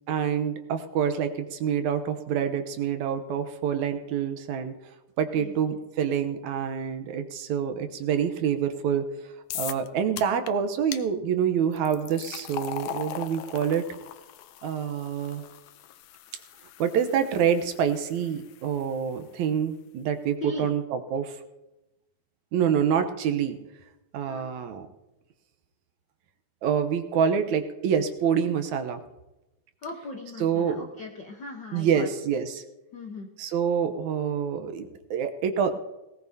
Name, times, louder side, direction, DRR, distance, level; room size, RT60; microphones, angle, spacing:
voice 1, 0.1-4.7 5.2-13.9 14.6-15.4 16.8-21.4 22.5-23.6 24.1-24.9 26.6-29.0 30.4-30.9 31.7-32.6 33.4-35.8, right 7 dB, 75° right, 8 dB, 2.2 m, -27 dB
sound 1, 9.5-9.9 10.2-10.5 10.9-11.0 11.7-18.9, left 11 dB, 90° left, 1.3 m, -40 dB
voice 2, 29.8-32.1 32.9-33.3, left 3 dB, 65° left, 2 dB, 1.0 m, -38 dB
18.5 x 18.0 x 2.8 m, 0.98 s
omnidirectional pair, 3.6 m